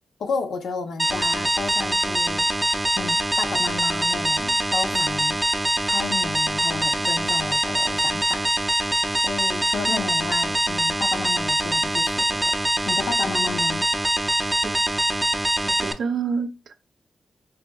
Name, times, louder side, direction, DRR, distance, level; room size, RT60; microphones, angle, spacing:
voice 1, 0.2-2.5 2.9-5.4 5.8-8.5 9.2-12.5 12.9-13.9, left 4 dB, 85° left, 0.6 m, -32 dB
sound 1, 1.0-15.9, right 1 dB, 10° right, 0.5 m, -23 dB
voice 2, 15.6-16.7, right 5 dB, 70° right, 0.6 m, -28 dB
4.8 x 2.6 x 2.3 m
wide cardioid pair, 120°, 0 cm